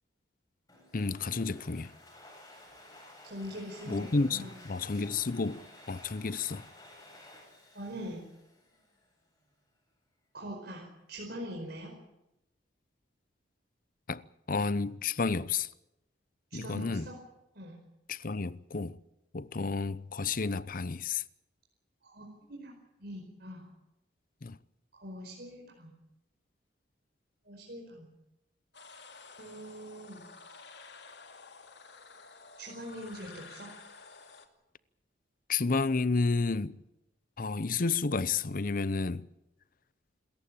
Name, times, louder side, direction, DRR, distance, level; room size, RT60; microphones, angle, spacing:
Domestic sounds home sounds, 0.7-9.1, left 1 dB, 20° left, 7.9 m, -54 dB
voice 1, 0.9-1.9 3.9-6.6 14.1-14.2 14.5-15.7 16.5-17.1 18.1-19.0 19.3-21.2 24.4-24.6 35.5-36.8 37.4-39.3, left 4 dB, 50° left, 0.7 m, -31 dB
voice 2, 3.2-4.5 7.7-8.2 10.3-11.9 16.5-17.2 17.5-17.8 22.0-22.7 23.0-23.7 24.9-25.9 27.4-28.1 29.4-30.3 32.6-33.7, equal, 60° right, 4.9 m, -43 dB
sound 1, 28.7-34.5, left 4 dB, 70° left, 2.4 m, -51 dB
27.0 x 14.5 x 8.8 m
head